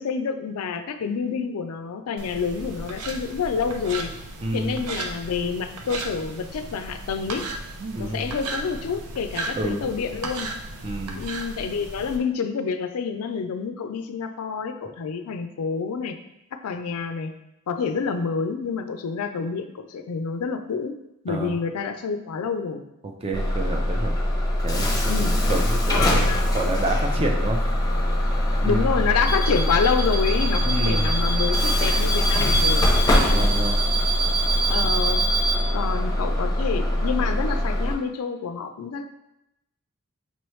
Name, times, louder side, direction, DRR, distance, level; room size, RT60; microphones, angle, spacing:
voice 1, 0.0-4.1 4.5-7.5 8.0-10.5 11.1-16.2 16.6-17.4 17.7-20.9 21.2-22.8 25.1-25.4 25.9-26.8 28.6-32.9 34.7-35.2 35.7-39.0, left 5 dB, 75° left, 8 dB, 0.4 m, -28 dB
sound 1, 2.2-12.2, right 2 dB, 80° right, 0.6 m, -35 dB
voice 2, 4.4-4.8 7.8-8.3 9.6-9.8 10.8-11.2 21.3-21.6 23.0-24.2 24.6-25.1 25.4-26.2 26.5-27.6 28.6-28.8 30.7-31.1 33.2-33.8 35.3-35.4, right 2 dB, 25° right, 2 dB, 0.5 m, -29 dB
Bus / Alarm, 23.3-37.9, equal, 15° left, 0.6 m, -22 dB
5.4 x 3.0 x 3.1 m, 0.87 s
head